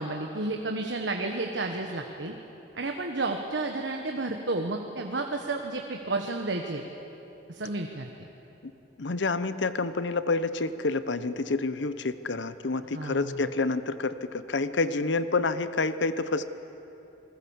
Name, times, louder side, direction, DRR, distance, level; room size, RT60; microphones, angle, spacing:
voice 1, 0.0-2.3 2.7-6.8 7.5-8.1 12.9-13.4, right 2 dB, 75° right, 3 dB, 1.4 m, -31 dB
voice 2, 9.0-16.4, left 3 dB, 80° left, 13 dB, 0.8 m, -28 dB
27.5 x 20.5 x 7.3 m, 2.9 s
head